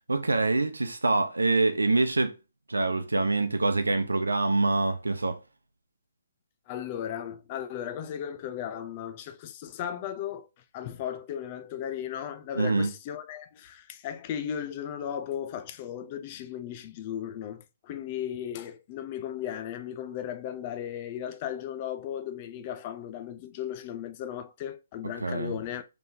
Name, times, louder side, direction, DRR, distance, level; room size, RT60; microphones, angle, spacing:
voice 1, 0.1-2.4 2.7-5.4 12.5-12.9 25.2-25.5, right 3 dB, 85° right, 0.7 m, -25 dB
voice 2, 6.7-10.5 10.7-25.9, left 9 dB, 35° left, 0.5 m, -36 dB
3.9 x 3.7 x 2.7 m
figure-of-eight pair, 135°, 0 cm